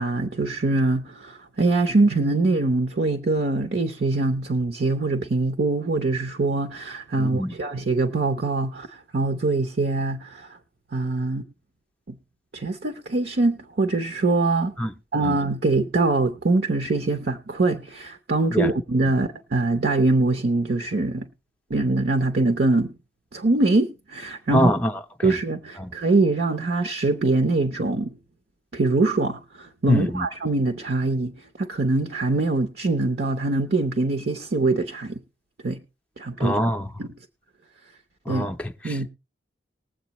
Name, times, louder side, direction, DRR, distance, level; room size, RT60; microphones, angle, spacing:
voice 1, 0.0-10.6 10.9-11.4 12.1-12.2 12.5-14.7 15.1-21.3 21.7-22.9 23.3-24.7 25.2-28.1 28.7-35.2 35.6-35.8 36.2-36.6 37.0-37.1 38.3-38.5 38.8-39.1, right 2 dB, 60° right, 0.8 m, -23 dB
voice 2, 7.2-7.5 14.8-14.9 15.2-15.4 18.5-18.7 24.5-24.9 25.2-25.3 25.8-25.9 29.9-30.3 36.4-36.9 38.3-39.0, equal, 5° left, 0.5 m, -23 dB
20.0 x 7.6 x 3.0 m
head